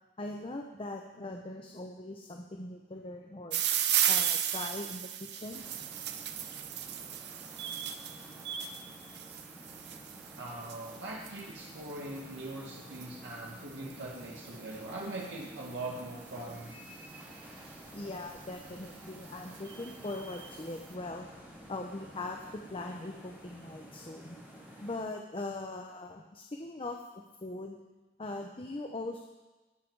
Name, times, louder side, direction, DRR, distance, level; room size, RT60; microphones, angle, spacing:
voice 1, 0.2-3.6 4.1-5.6 17.9-21.2 21.7-24.4 24.8-27.8 28.2-29.2, left 2 dB, 30° left, 2 dB, 0.8 m, -41 dB
sound 1, 3.5-16.7 17.6-18.0 18.6-18.7 18.9-19.0 19.3-20.6, right 10 dB, 65° right, 0.8 m, -36 dB
sound 2, 5.5-25.0, equal, 10° right, 3.1 m, -51 dB
voice 2, 10.3-16.7, right 2 dB, 85° right, -3 dB, 1.7 m, -41 dB
17.5 x 7.5 x 4.7 m, 1.1 s
head